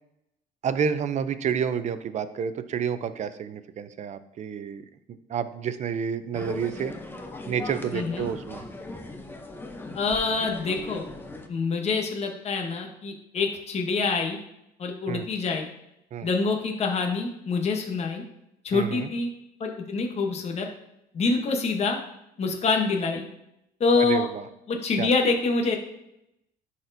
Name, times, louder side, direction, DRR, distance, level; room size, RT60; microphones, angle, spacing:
voice 1, 0.6-4.8 5.3-6.9 7.5-8.6 15.1-15.3 16.1-16.3 18.7-19.1 24.0-24.4 25.0-25.1, right 7 dB, 45° right, 12 dB, 0.5 m, -29 dB
sound 1, 6.3-11.5, left 2 dB, 10° left, 0.7 m, -39 dB
voice 2, 7.9-8.3 9.9-11.1 11.5-14.4 14.8-15.7 16.2-18.2 18.6-19.3 19.6-20.7 21.1-22.0 22.4-23.2 23.8-24.3 24.7-25.8, left 4 dB, 40° left, 2 dB, 1.0 m, -26 dB
10.5 x 4.2 x 2.6 m, 0.82 s
cardioid pair, 110°, 17 cm